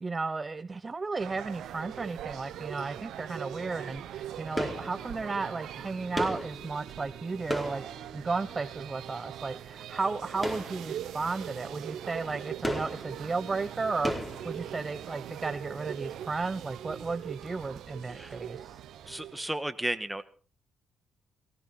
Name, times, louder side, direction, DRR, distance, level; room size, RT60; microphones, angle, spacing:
voice 1, 0.0-7.8 8.1-14.1 14.4-18.7, right 4 dB, 30° right, 12 dB, 0.7 m, -34 dB
sound 1, 1.2-19.5, right 11 dB, 75° right, 1.1 m, -42 dB
sound 2, 4.6-5.5 6.2-8.7 10.4-11.4 11.7-11.8 12.6-15.2 15.5-15.6, left 1 dB, 15° left, 4.6 m, -36 dB
voice 2, 18.1-18.4 19.0-20.2, right 1 dB, 10° right, 11 dB, 1.6 m, -34 dB
18.0 x 17.0 x 4.2 m, 0.41 s
supercardioid pair, 55°, 0 cm